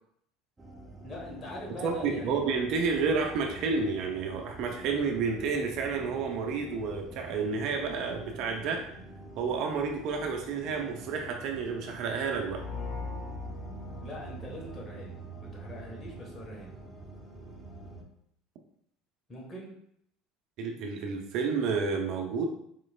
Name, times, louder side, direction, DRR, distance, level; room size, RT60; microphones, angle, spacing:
sound 1, 0.6-18.0, right 3 dB, 20° right, 0.8 m, -46 dB
voice 1, 1.0-2.4 14.0-15.1 15.4-16.7 19.3-19.7, left 1 dB, 30° left, -2 dB, 1.4 m, -42 dB
voice 2, 1.8-8.8 9.4-12.6 20.6-22.4, right 5 dB, 60° right, 2 dB, 0.6 m, -30 dB
sound 2, 12.4-15.3, left 5 dB, 55° left, 0.5 m, -40 dB
4.4 x 3.1 x 2.4 m, 0.69 s
hypercardioid pair, 70°, 0 cm